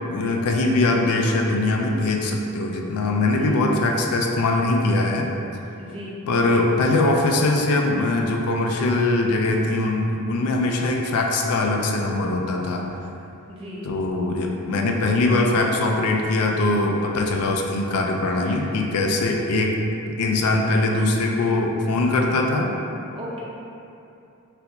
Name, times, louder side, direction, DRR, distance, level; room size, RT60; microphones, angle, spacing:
voice 1, 0.1-5.3 6.3-12.8 13.8-19.8 20.2-22.7, left 2 dB, 85° left, 1 dB, 0.4 m, -21 dB
voice 2, 5.8-6.2 13.5-13.9 18.4-18.7 23.1-23.4, equal, 25° right, -7 dB, 0.6 m, -37 dB
3.4 x 2.4 x 2.8 m, 2.7 s
head